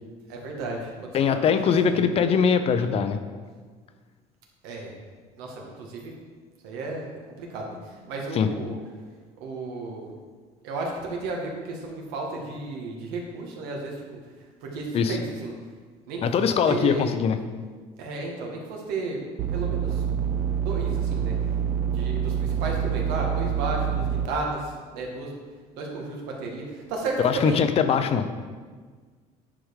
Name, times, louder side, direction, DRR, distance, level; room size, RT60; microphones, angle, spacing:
voice 1, 0.3-1.4 1.9-2.1 4.6-4.9 5.4-6.2 6.6-8.8 9.4-10.1 10.6-14.2 14.6-15.6 16.1-17.1 18.0-19.2 19.5-20.0 20.5-21.3 21.8-25.4 25.7-27.7, right 3 dB, 85° right, 0 dB, 1.9 m, -33 dB
voice 2, 1.1-3.2 8.3-8.5 14.9-15.2 16.2-17.4 27.2-28.3, left 6 dB, 40° left, 9 dB, 0.7 m, -22 dB
sound 1, 19.4-24.3, right 8 dB, 55° right, 0.7 m, -26 dB
9.7 x 5.1 x 4.9 m, 1.5 s
cardioid pair, 135°, 15 cm